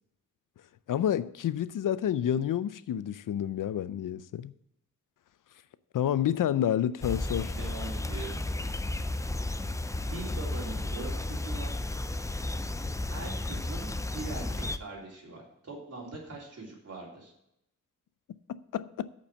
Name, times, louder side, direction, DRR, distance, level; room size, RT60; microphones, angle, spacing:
voice 1, 0.9-4.5 5.9-7.6 18.5-19.1, left 10 dB, 85° left, 0.5 m, -29 dB
sound 1, 7.0-14.8, left 2 dB, 10° left, 0.4 m, -33 dB
voice 2, 7.5-8.4 10.0-11.8 13.1-17.3, right 3 dB, 50° right, 3.6 m, -42 dB
8.5 x 5.4 x 7.5 m
wide cardioid pair, 150°, 31 cm